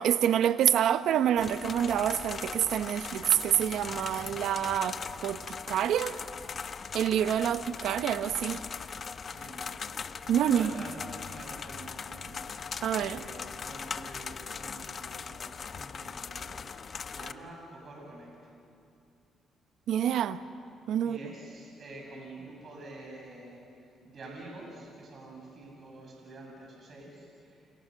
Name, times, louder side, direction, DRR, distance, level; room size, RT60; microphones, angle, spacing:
voice 1, 0.0-6.2 6.9-8.6 10.3-10.7 12.8-13.2 19.9-20.4 20.9-21.2, right 10 dB, 75° right, 1.0 m, -27 dB
gutter dropping, 1.4-17.3, left 6 dB, 45° left, 0.8 m, -40 dB
voice 2, 9.3-10.0 10.5-11.0 11.3-12.6 12.9-18.3 21.0-23.6 24.0-27.7, right 2 dB, 50° right, 7.8 m, -47 dB
30.0 x 28.0 x 6.7 m
cardioid pair, 90°, 0 cm